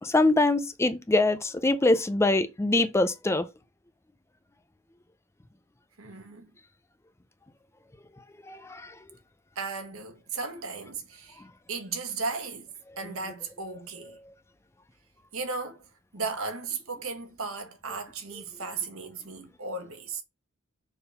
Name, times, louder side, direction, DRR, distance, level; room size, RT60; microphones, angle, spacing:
voice 1, 0.0-3.5 8.5-8.9, left 2 dB, 15° left, 0.4 m, -24 dB
voice 2, 6.0-6.5 9.5-11.4 11.7-14.2 15.3-20.2, right 4 dB, 85° right, 1.4 m, -36 dB
6.7 x 3.6 x 5.6 m
head